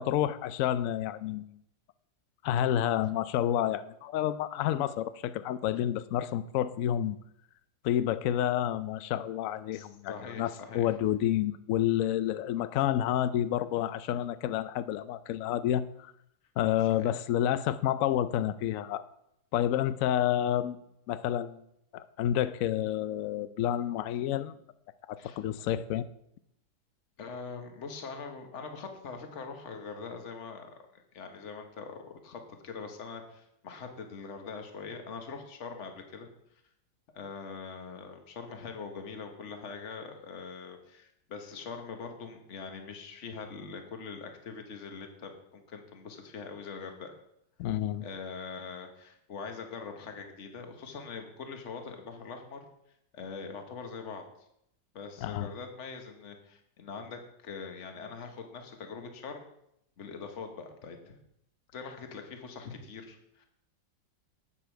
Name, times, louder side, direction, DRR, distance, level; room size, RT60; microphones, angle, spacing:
voice 1, 0.0-1.5 2.4-7.2 7.8-16.1 16.6-19.0 19.5-21.6 21.9-24.6 25.1-26.1 47.6-48.1 55.2-55.5, left 11 dB, 90° left, 14 dB, 0.7 m, -29 dB
voice 2, 9.7-10.9 16.9-17.1 25.2-25.4 27.2-36.3 37.1-47.2 48.0-52.6 53.1-54.2 54.9-59.5 60.0-61.2 61.7-63.5, left 5 dB, 45° left, 5 dB, 1.5 m, -43 dB
11.0 x 8.6 x 4.6 m, 0.77 s
omnidirectional pair, 2.0 m